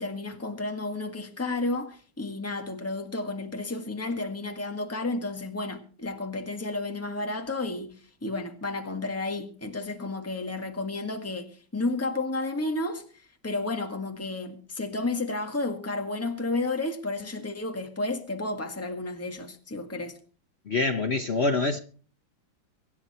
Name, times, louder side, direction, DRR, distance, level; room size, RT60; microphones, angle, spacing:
voice 1, 0.0-7.9 8.2-20.2, left 2 dB, 10° left, 1.6 m, -32 dB
voice 2, 20.7-21.8, left 3 dB, 50° left, 0.8 m, -25 dB
24.0 x 9.6 x 4.3 m
omnidirectional pair, 2.1 m